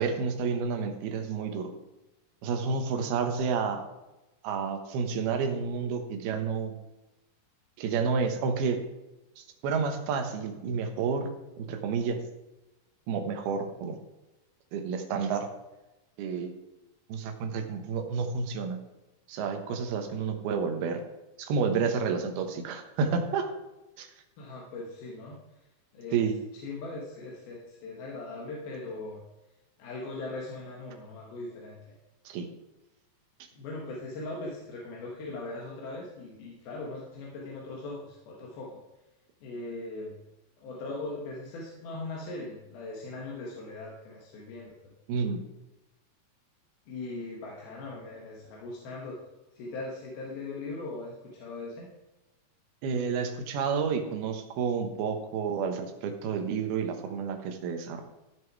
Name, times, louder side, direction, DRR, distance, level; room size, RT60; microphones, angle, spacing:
voice 1, 0.0-1.7 2.4-3.8 4.4-6.8 7.8-8.8 9.4-11.3 11.6-12.2 13.1-14.0 14.7-15.5 16.2-16.5 17.1-18.8 19.3-21.0 21.4-23.5 24.0-24.1 26.1-26.3 32.3-32.5 45.1-45.4 52.8-58.0, right 5 dB, 85° right, 6 dB, 3.1 m, -30 dB
voice 2, 24.4-25.4 25.9-26.2 26.6-29.2 29.8-31.9 33.6-38.8 39.4-40.2 40.6-44.7 46.9-49.2 49.6-51.9, left 2 dB, 75° left, -3 dB, 3.4 m, -39 dB
15.0 x 6.5 x 4.7 m, 1.0 s
omnidirectional pair, 4.3 m